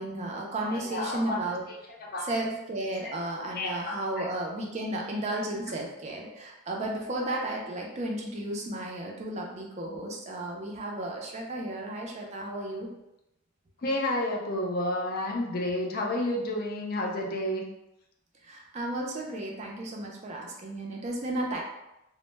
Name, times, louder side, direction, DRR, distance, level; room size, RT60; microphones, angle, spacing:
voice 1, 0.0-1.6 2.3-12.9 18.4-21.6, right 1 dB, 35° right, -1 dB, 0.4 m, -33 dB
voice 2, 0.6-1.4 1.9-2.3 3.0-3.1 3.5-4.3 13.8-17.6, left 1 dB, 45° left, 0 dB, 0.4 m, -31 dB
2.1 x 2.0 x 3.1 m, 0.90 s
head